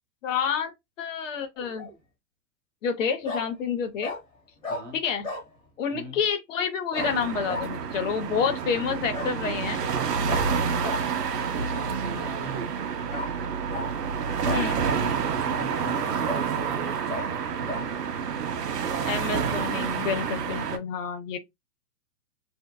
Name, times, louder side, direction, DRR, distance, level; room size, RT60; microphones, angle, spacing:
voice 1, 0.2-0.7 1.0-1.9 2.8-4.1 4.9-5.3 5.8-9.8 14.5-14.9 19.0-21.4, left 6 dB, 50° left, 0.6 m, -29 dB
Bark, 1.5-1.9 3.2-3.4 4.0-4.2 4.6-4.8 5.2-5.5 6.9-7.1 7.5-7.7 9.1-9.3 10.3-10.4 10.8-11.0 13.1-13.3 13.7-13.9 14.4-15.1 15.6-15.7 16.2-16.4 17.1-17.2 17.7-17.8, left 2 dB, 10° left, 0.6 m, -33 dB
sound 1, 7.0-20.8, right 6 dB, 75° right, 0.7 m, -28 dB
voice 2, 11.5-12.8 15.4-16.9, equal, 30° right, 0.9 m, -40 dB
2.7 x 2.1 x 2.2 m
hypercardioid pair, 125°, 49 cm